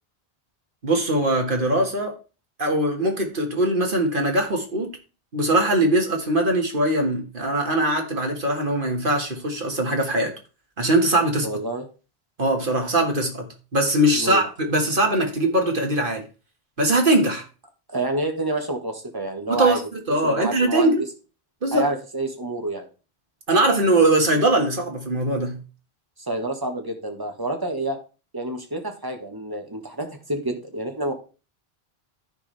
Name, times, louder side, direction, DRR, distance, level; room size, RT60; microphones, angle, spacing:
voice 1, 0.8-2.1 2.6-4.9 5.3-10.3 10.8-11.5 12.4-16.2 16.8-17.4 19.5-21.0 21.6-21.9 23.5-25.6, right 1 dB, 55° right, 2.1 m, -21 dB
voice 2, 11.4-11.8 14.1-14.4 17.9-19.8 20.2-20.9 21.7-22.9 26.3-28.0 28.3-31.2, right 1 dB, 20° right, 1.6 m, -28 dB
14.0 x 4.9 x 3.4 m
omnidirectional pair, 1.1 m